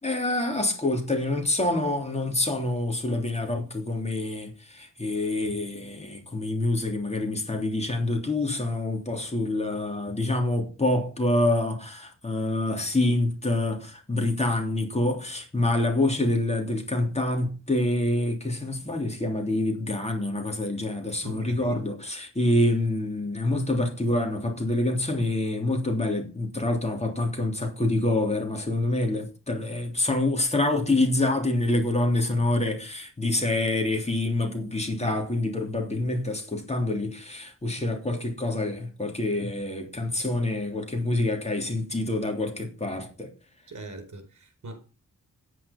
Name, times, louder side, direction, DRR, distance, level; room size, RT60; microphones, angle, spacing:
voice 1, 0.0-43.3, left 2 dB, 20° left, 3.3 m, -26 dB
voice 2, 21.2-21.8 43.7-44.8, right 1 dB, 60° right, 4.5 m, -41 dB
10.0 x 9.5 x 5.4 m
wide cardioid pair, 120°, 33 cm